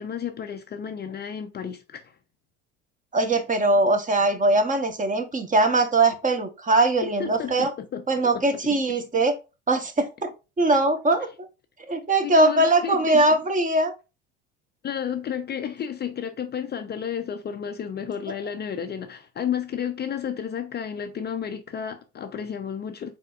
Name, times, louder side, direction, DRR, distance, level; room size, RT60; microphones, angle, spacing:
voice 1, 0.0-2.2 7.0-8.0 8.3-8.4 12.2-13.2 14.8-23.2, left 8 dB, 30° left, 0.5 m, -32 dB
voice 2, 3.1-7.7 8.1-9.4 9.7-11.3 11.9-13.9, right 2 dB, 25° right, 1.1 m, -21 dB
4.2 x 4.1 x 2.4 m
hypercardioid pair, 75°, 34 cm